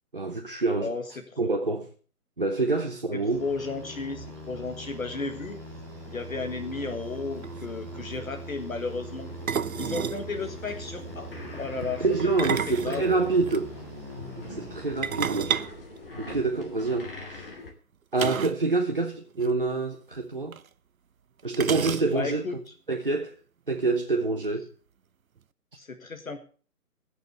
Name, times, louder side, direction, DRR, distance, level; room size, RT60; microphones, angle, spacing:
voice 1, 0.1-0.9 1.4-1.9 2.4-3.4 11.8-13.7 14.4-15.6 16.2-17.5 18.1-20.6 21.4-22.5 22.9-23.4 23.7-24.7, right 3 dB, 35° right, 0.8 m, -27 dB
voice 2, 0.8-1.4 3.4-5.6 6.1-9.3 9.8-11.3 11.6-12.0 12.6-13.2 22.1-22.6 25.7-26.4, left 4 dB, 60° left, 1.9 m, -34 dB
sound 1, 3.2-16.0, right 1 dB, 10° left, 3.6 m, -41 dB
sound 2, 7.1-7.2 7.4-7.7 9.5-10.3 12.2-13.6 15.0-16.7 18.2-18.7 18.9-19.0 19.3-19.5 20.5-20.6 21.5-22.4, right 7 dB, 60° right, 0.6 m, -30 dB
sound 3, 9.1-17.7, left 3 dB, 35° left, 2.6 m, -44 dB
16.5 x 6.7 x 6.9 m
hypercardioid pair, 175°, 47 cm